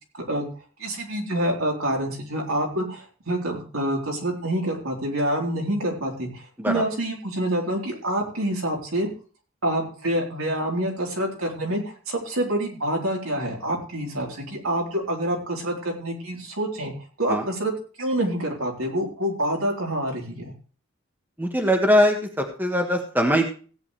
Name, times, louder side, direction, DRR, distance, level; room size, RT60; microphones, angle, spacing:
voice 1, 0.8-9.1 9.6-17.7 18.0-20.5, right 1 dB, 80° right, -1 dB, 3.9 m, -27 dB
voice 2, 21.4-23.5, equal, 10° right, 3 dB, 1.5 m, -21 dB
17.0 x 9.6 x 3.3 m, 0.39 s
head